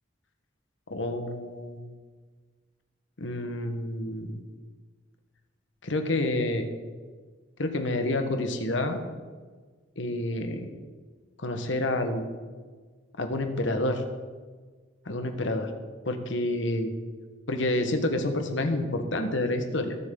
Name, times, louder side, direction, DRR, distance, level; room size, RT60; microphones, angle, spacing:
voice 1, 0.9-1.8 3.2-4.4 5.8-6.7 7.6-9.0 10.0-10.7 11.4-12.3 13.2-14.0 15.0-15.7 16.1-16.9 17.5-20.0, left 1 dB, 75° left, 6 dB, 1.4 m, -28 dB
22.5 x 8.0 x 3.9 m, 1.5 s
head